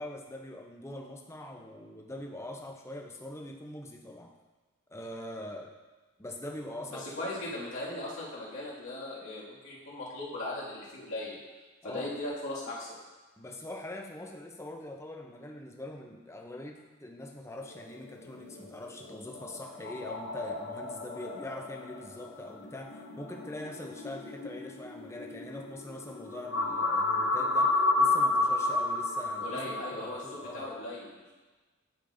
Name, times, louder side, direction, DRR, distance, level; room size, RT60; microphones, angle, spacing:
voice 1, 0.0-4.3 4.9-5.7 6.2-7.3 11.8-12.1 13.4-30.6, left 1 dB, 15° left, 1 dB, 0.6 m, -43 dB
voice 2, 7.0-11.4 11.8-13.0 29.4-31.2, left 1 dB, 75° left, -7 dB, 2.2 m, -38 dB
sound 1, 17.7-30.7, left 2 dB, 60° left, 0.7 m, -32 dB
10.0 x 5.2 x 2.6 m, 1.3 s
head